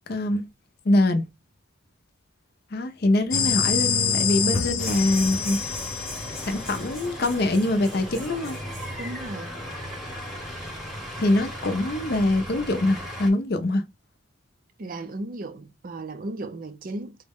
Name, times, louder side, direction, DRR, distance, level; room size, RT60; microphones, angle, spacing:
voice 1, 0.1-0.4 0.8-1.2 2.7-5.6 6.5-8.6 11.2-13.8, left 1 dB, 50° left, 0.5 m, -23 dB
sound 1, 3.3-7.0, left 6 dB, 85° left, 0.7 m, -26 dB
sound 2, 4.8-13.3, equal, ahead, 0.9 m, -36 dB
voice 2, 9.0-9.6 14.8-17.2, right 2 dB, 40° right, 0.4 m, -35 dB
3.9 x 2.1 x 3.5 m
head